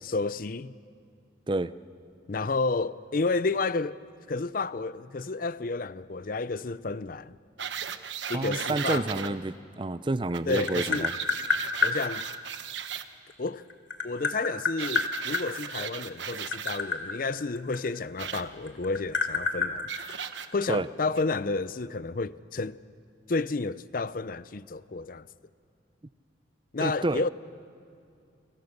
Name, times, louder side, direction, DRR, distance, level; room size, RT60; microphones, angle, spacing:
voice 1, 0.0-0.8 2.3-4.0 4.3-7.4 8.3-9.4 10.5-11.1 11.8-12.3 13.4-13.7 14.0-19.9 20.5-22.8 23.3-25.3 26.7-27.3, left 3 dB, 50° left, 0.6 m, -31 dB
sound 1, 7.6-9.3 10.3-13.0 14.8-16.8 18.2-18.4 19.9-20.5 21.2-21.3, right 8 dB, 75° right, 1.1 m, -36 dB
voice 2, 8.3-11.1 20.7-20.9 26.8-27.3, right 2 dB, 25° right, 0.5 m, -29 dB
Tap, 10.1-12.0 13.3-15.4 16.2-18.4 18.7-20.7, left 4 dB, 85° left, 2.4 m, -28 dB
29.5 x 24.5 x 6.6 m
head